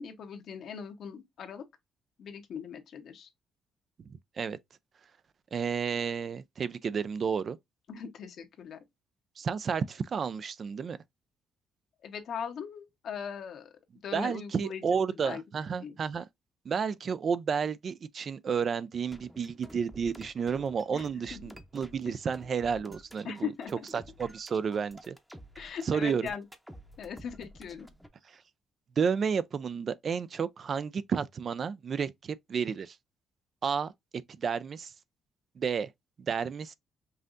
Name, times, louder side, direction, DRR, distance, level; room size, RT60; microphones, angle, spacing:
voice 1, 0.0-1.6 2.2-3.3 7.9-8.8 12.0-13.7 14.0-14.8 15.2-15.4 15.8-16.0 20.9-21.1 21.3-21.4 23.2-23.7 25.6-26.4 27.0-27.9, left 7 dB, 65° left, 1.0 m, -39 dB
voice 2, 4.1-4.6 5.5-7.6 9.4-11.0 14.1-16.3 16.7-23.5 23.9-25.2 25.8-26.3 28.3-28.4 29.0-33.0 33.6-34.9 35.6-35.9 36.2-36.7, right 6 dB, 50° right, 0.4 m, -31 dB
sound 1, 19.1-28.1, equal, 5° right, 0.7 m, -51 dB
5.5 x 2.6 x 2.5 m
cardioid pair, 90°, 0 cm